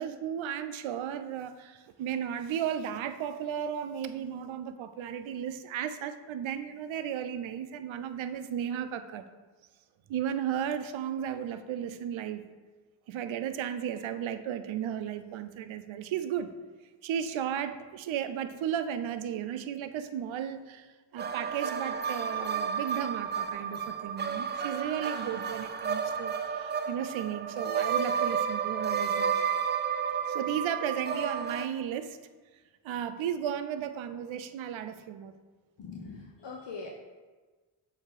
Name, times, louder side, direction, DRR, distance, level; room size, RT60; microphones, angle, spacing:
voice 1, 0.0-9.2 10.1-12.4 13.1-16.5 17.0-29.3 30.3-32.2 32.8-35.3, right 9 dB, 70° right, 10 dB, 0.6 m, -34 dB
sound 1, 21.2-31.7, right 7 dB, 25° right, 0.4 m, -32 dB
voice 2, 35.8-36.9, left 4 dB, 60° left, 0 dB, 0.9 m, -42 dB
7.2 x 2.9 x 4.7 m, 1.3 s
supercardioid pair, 45°, 48 cm